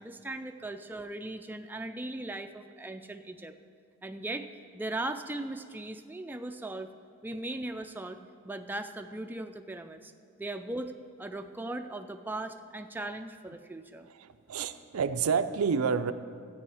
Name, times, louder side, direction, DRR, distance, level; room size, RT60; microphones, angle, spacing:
voice 1, 0.0-3.5 4.0-4.5 4.7-6.9 7.2-8.2 8.4-10.1 10.4-10.9 11.2-14.1, right 2 dB, 10° right, 6 dB, 0.3 m, -38 dB
voice 2, 14.0-16.1, right 6 dB, 90° right, 11 dB, 0.5 m, -29 dB
14.0 x 8.6 x 4.8 m, 2.2 s
head